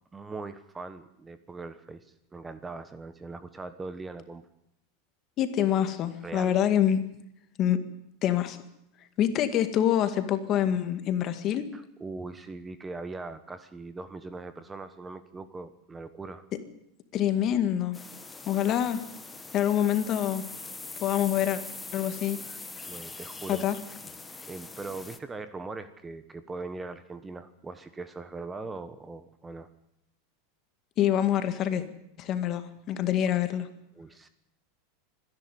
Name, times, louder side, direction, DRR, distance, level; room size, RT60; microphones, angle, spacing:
voice 1, 0.1-4.5 6.2-6.6 11.7-16.5 22.9-23.6 24.5-29.7 34.0-34.3, right 3 dB, 15° right, 11 dB, 1.1 m, -40 dB
voice 2, 5.4-7.0 7.6-7.8 8.2-8.6 9.2-11.7 17.1-18.0 18.5-19.0 19.5-20.4 21.0-21.6 21.9-22.4 23.5-23.8 31.0-31.8 32.2-33.7, left 10 dB, 40° left, 9 dB, 2.0 m, -26 dB
sound 1, 17.9-25.2, left 3 dB, 10° left, 1.3 m, -42 dB
25.5 x 11.0 x 9.4 m, 0.80 s
supercardioid pair, 135°, 0 cm